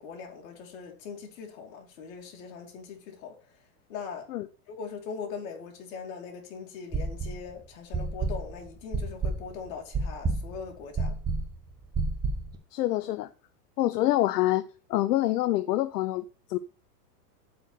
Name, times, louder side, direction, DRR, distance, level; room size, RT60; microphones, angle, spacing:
voice 1, 0.0-3.4 3.9-4.3 4.7-11.2, left 6 dB, 55° left, 2.8 m, -41 dB
sound 1, 6.9-7.5 7.9-12.5, right 3 dB, 10° right, 0.6 m, -30 dB
voice 2, 12.7-13.3 13.8-16.6, left 15 dB, 70° left, 0.7 m, -26 dB
7.7 x 4.7 x 6.8 m
supercardioid pair, 155°, 49 cm